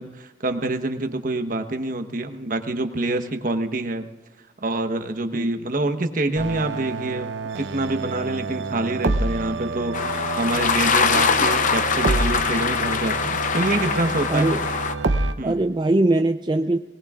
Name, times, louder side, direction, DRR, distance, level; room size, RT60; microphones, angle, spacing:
voice 1, 0.0-4.1 4.6-7.3 7.6-14.5 15.4-15.6, right 2 dB, 50° right, 7 dB, 1.1 m, -26 dB
sound 1, 6.3-15.3, right 3 dB, 80° right, 0.7 m, -28 dB
sound 2, 9.9-14.9, left 5 dB, 45° left, 0.7 m, -23 dB
voice 2, 14.3-14.7 15.4-16.8, right 2 dB, 25° right, 5 dB, 0.5 m, -21 dB
23.0 x 19.0 x 2.4 m, 1.1 s
head